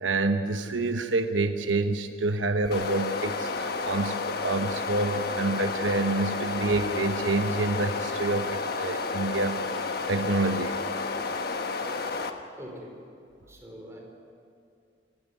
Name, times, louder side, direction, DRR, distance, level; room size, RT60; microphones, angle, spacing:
voice 1, 0.0-9.8 10.1-10.8, right 2 dB, 90° right, 7 dB, 1.0 m, -27 dB
sound 1, 2.6-12.3, left 4 dB, 55° left, 1.2 m, -31 dB
voice 2, 12.6-13.0 13.5-14.0, equal, 15° right, -1 dB, 4.5 m, -43 dB
25.5 x 13.0 x 9.7 m, 2.4 s
head